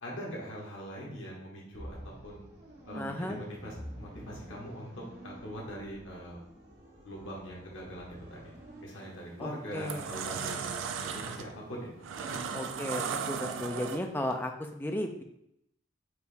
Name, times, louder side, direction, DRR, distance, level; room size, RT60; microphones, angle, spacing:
voice 1, 0.0-2.4 2.9-6.4 7.0-8.5 8.8-10.7 11.0-11.9 12.2-12.5, equal, 85° left, -3 dB, 1.3 m, -42 dB
sound 1, 1.7-8.8, equal, 55° right, 1.1 m, -47 dB
voice 2, 2.9-3.4 9.4-10.1 12.5-15.2, left 1 dB, 10° left, 4 dB, 0.3 m, -35 dB
sound 2, 8.9-9.2 9.6-14.3, right 6 dB, 85° right, 0.4 m, -36 dB
4.5 x 2.7 x 3.3 m, 0.77 s
head